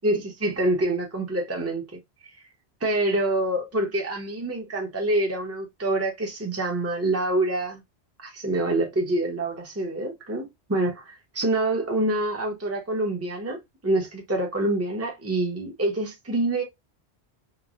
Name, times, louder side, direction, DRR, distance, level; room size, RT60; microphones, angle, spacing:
voice 1, 0.0-2.0 2.8-7.8 8.2-13.6 13.8-16.6, right 2 dB, 15° right, 0.8 m, -26 dB
3.0 x 2.1 x 2.4 m
omnidirectional pair, 1.1 m